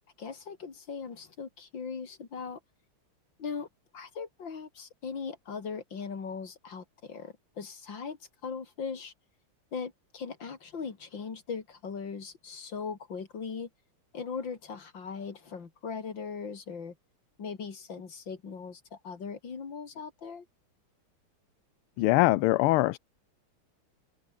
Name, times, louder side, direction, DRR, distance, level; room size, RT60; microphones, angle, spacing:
voice 1, 0.2-2.6 3.4-3.7 3.9-9.1 9.7-13.7 14.1-16.9 17.4-20.4, left 5 dB, 55° left, 3.4 m, -39 dB
voice 2, 22.0-23.0, left 18 dB, 80° left, 1.5 m, -23 dB
omnidirectional pair, 2.4 m